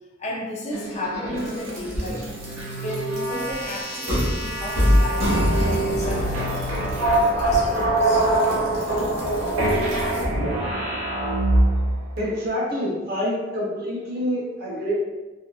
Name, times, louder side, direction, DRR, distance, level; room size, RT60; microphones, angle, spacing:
voice 1, 0.2-2.4 2.7-8.3, left 1 dB, 35° left, -2 dB, 0.4 m, -34 dB
sound 1, 0.7-12.0, right 1 dB, 85° right, 0.9 m, -23 dB
voice 2, 12.2-14.9, equal, 50° right, -5 dB, 0.8 m, -27 dB
2.7 x 2.4 x 2.3 m, 1.2 s
head